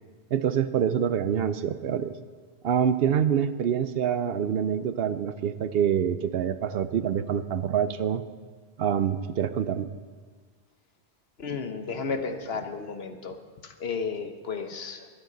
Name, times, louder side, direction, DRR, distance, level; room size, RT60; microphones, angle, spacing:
voice 1, 0.3-2.1 2.6-8.2 8.8-9.9, right 8 dB, 65° right, 13 dB, 0.7 m, -26 dB
voice 2, 11.4-13.4 13.6-15.1, left 5 dB, 65° left, 7 dB, 1.2 m, -33 dB
23.0 x 8.9 x 3.9 m, 1.5 s
omnidirectional pair, 1.1 m